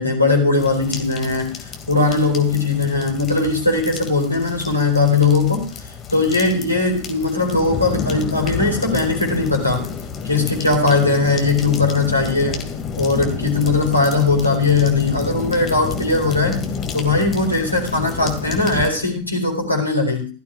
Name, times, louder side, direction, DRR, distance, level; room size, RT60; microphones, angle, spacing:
voice 1, 0.0-5.7 6.1-9.8 10.2-12.7 13.0-16.6 16.9-20.3, left 3 dB, 85° left, 2 dB, 4.3 m, -19 dB
sound 1, 0.6-18.9, left 6 dB, 25° left, 2.3 m, -30 dB
16.5 x 13.0 x 2.5 m, 0.37 s
figure-of-eight pair, 90°, 0 cm